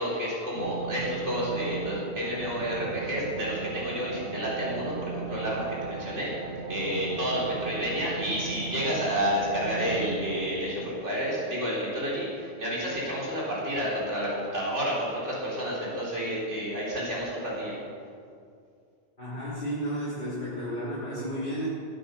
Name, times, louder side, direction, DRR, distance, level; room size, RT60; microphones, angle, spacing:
voice 1, 0.0-6.3 6.7-17.8, equal, 85° right, -6 dB, 4.3 m, -30 dB
sound 1, 0.5-10.5, right 5 dB, 65° right, 1.4 m, -37 dB
voice 2, 19.2-21.7, equal, 45° left, -10 dB, 4.3 m, -32 dB
20.0 x 9.2 x 7.0 m, 2.3 s
omnidirectional pair, 1.2 m